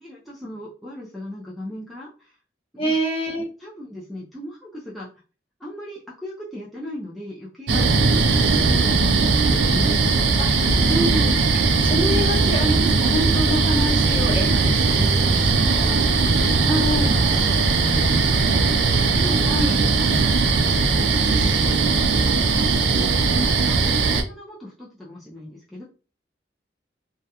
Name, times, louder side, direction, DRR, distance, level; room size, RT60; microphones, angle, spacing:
voice 1, 0.0-2.3 2.7-3.0 3.6-5.1 5.6-7.8 8.4-8.9 9.3-11.3 15.8-19.9 20.2-25.8, left 1 dB, ahead, -7 dB, 0.5 m, -38 dB
voice 2, 2.8-3.4 7.7-7.9 10.4-10.5 10.9-11.3 11.8-15.9 16.7-17.1 19.5-19.8, equal, 30° left, -1 dB, 0.8 m, -26 dB
sound 1, 7.7-24.2, right 4 dB, 90° right, 0.4 m, -19 dB
2.3 x 2.1 x 2.8 m, 0.35 s
head